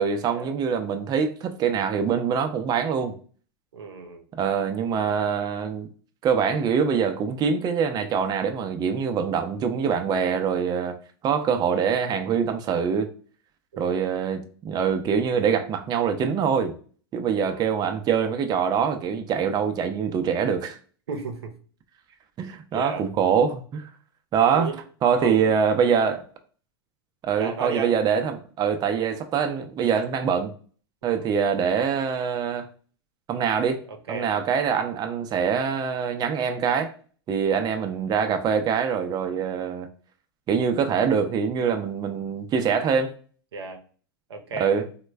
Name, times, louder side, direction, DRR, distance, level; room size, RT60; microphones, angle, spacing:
voice 1, 0.0-3.1 4.3-5.9 6.2-10.9 11.2-13.1 13.8-16.7 17.1-20.8 22.4-23.8 24.3-24.7 25.0-26.2 27.2-30.5 31.0-32.7 33.3-33.8 34.1-36.9 37.3-39.9 40.5-43.1 44.6-44.9, right 7 dB, 30° right, 0.5 m, -24 dB
voice 2, 3.7-4.2 13.7-14.0 17.4-17.8 21.1-21.6 22.7-23.0 24.5-24.8 25.2-25.5 27.4-27.9 31.0-31.3 33.9-34.3 43.5-43.8 44.3-44.7, right 4 dB, 85° right, 0.6 m, -34 dB
3.0 x 2.1 x 3.3 m
hypercardioid pair, 100°, 13 cm